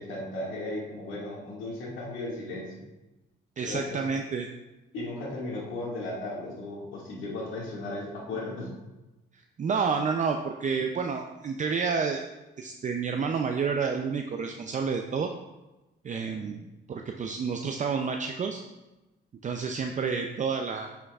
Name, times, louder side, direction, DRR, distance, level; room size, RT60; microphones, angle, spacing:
voice 1, 0.0-2.7 3.6-4.0 4.9-8.7 16.3-16.6, left 2 dB, 85° left, -3 dB, 2.1 m, -36 dB
voice 2, 3.6-4.5 9.6-12.3 12.6-15.3 16.0-16.6 16.9-18.6 19.4-21.0, right 5 dB, 40° right, 4 dB, 0.5 m, -29 dB
9.3 x 5.8 x 2.4 m, 1.0 s
cardioid pair, 90°, 20 cm